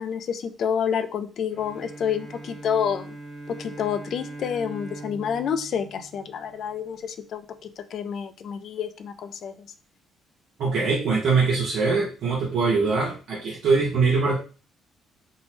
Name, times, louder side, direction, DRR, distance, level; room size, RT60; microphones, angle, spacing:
voice 1, 0.0-3.2 3.5-9.5, left 7 dB, 65° left, 8 dB, 0.3 m, -29 dB
Bowed string instrument, 1.5-6.9, right 2 dB, 40° right, 1.3 m, -41 dB
voice 2, 10.6-14.4, right 4 dB, 75° right, -3 dB, 0.8 m, -22 dB
2.6 x 2.0 x 3.0 m, 0.35 s
cardioid pair, 90°, 0 cm